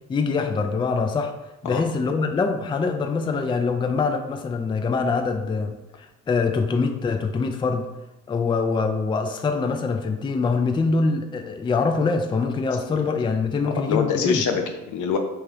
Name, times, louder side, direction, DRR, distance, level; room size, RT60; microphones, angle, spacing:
voice 1, 0.1-1.3 1.6-7.9 8.3-14.4, left 4 dB, 15° left, 5 dB, 0.3 m, -24 dB
voice 2, 13.6-15.2, left 6 dB, 75° left, 5 dB, 0.6 m, -25 dB
3.5 x 2.8 x 3.3 m, 0.97 s
cardioid pair, 90°, 30 cm